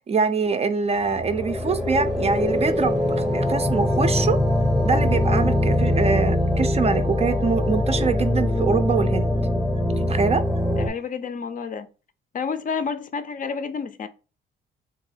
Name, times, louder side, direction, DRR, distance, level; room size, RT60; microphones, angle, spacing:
voice 1, 0.1-4.4 4.8-9.4 10.0-10.4, right 5 dB, 30° right, 0.4 m, -24 dB
sound 1, 1.0-10.9, left 1 dB, ahead, 0.7 m, -22 dB
voice 2, 10.7-11.9 12.3-14.1, left 5 dB, 40° left, 0.4 m, -29 dB
3.5 x 2.3 x 3.3 m
cardioid pair, 90°, 20 cm